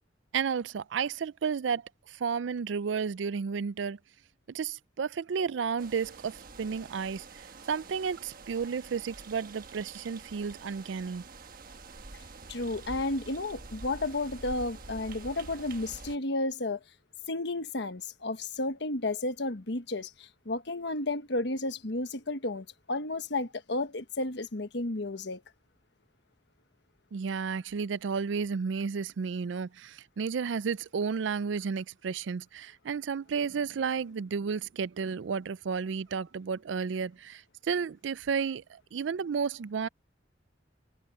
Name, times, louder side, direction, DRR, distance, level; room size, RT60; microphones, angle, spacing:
voice 1, 0.3-4.0 4.5-11.2 27.1-39.9, right 6 dB, 80° right, 0.4 m, -32 dB
sound 1, 5.8-16.2, right 3 dB, 50° right, 1.3 m, -47 dB
voice 2, 12.5-16.8 17.3-25.4, left 2 dB, 65° left, 1.3 m, -32 dB
head